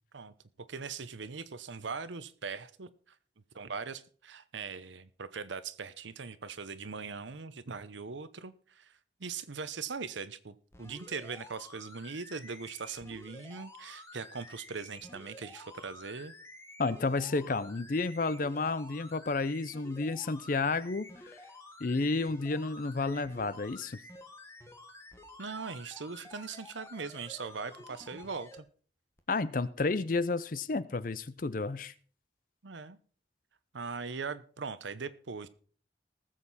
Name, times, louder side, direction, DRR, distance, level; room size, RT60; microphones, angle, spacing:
voice 1, 0.7-2.9 3.5-8.9 9.2-16.4 25.4-28.6 32.6-33.0 33.7-35.5, right 5 dB, 85° right, 14 dB, 0.8 m, -40 dB
sound 1, 10.7-28.6 29.2-29.3, left 2 dB, 15° left, 1.4 m, -51 dB
voice 2, 16.8-21.3 21.8-24.0 29.3-31.9, left 3 dB, 45° left, 16 dB, 0.5 m, -31 dB
19.0 x 7.5 x 4.1 m, 0.43 s
head